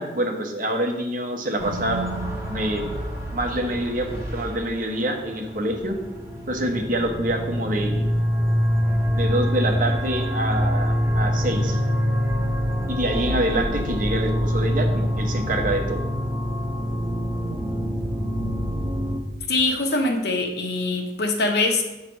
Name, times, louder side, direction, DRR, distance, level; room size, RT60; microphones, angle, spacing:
voice 1, 0.0-2.0 2.5-2.8 3.3-6.0 6.5-8.1 9.1-11.8 12.9-16.1, right 1 dB, 50° right, 3 dB, 1.0 m, -26 dB
sound 1, 1.6-19.2, equal, 15° right, 0.9 m, -25 dB
voice 2, 19.5-21.8, left 2 dB, 65° left, 4 dB, 1.0 m, -23 dB
8.1 x 3.2 x 6.1 m, 1.0 s
head